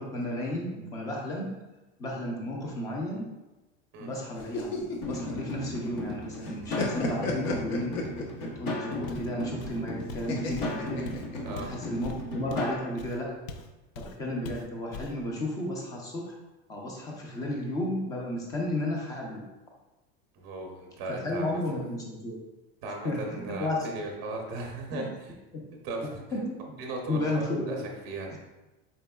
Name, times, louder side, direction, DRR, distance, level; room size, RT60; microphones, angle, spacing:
voice 1, 0.0-1.5 2.0-3.3 4.0-7.9 8.6-11.1 11.5-13.3 14.0-16.3 16.7-19.4 21.1-22.4 23.0-23.9 24.9-25.1 26.3-26.6 27.1-27.8 28.3-28.4, left 1 dB, 10° left, -1 dB, 0.4 m, -33 dB
sound 1, 4.4-6.1 6.4-8.6 10.3-11.7, left 3 dB, 90° left, 0.9 m, -33 dB
sound 2, 5.0-12.8, left 2 dB, 35° left, 0.8 m, -36 dB
Walk footsteps, 9.1-9.3 9.6-13.7 13.9-14.2 14.4-15.2, left 3 dB, 70° left, 0.5 m, -42 dB
voice 2, 11.4-11.7 20.3-21.6 22.8-25.3 25.7-26.2 26.8-27.8 28.0-28.3, right 2 dB, 30° right, 0 dB, 0.6 m, -37 dB
4.2 x 3.8 x 2.2 m, 1.1 s
supercardioid pair, 180°, 30 cm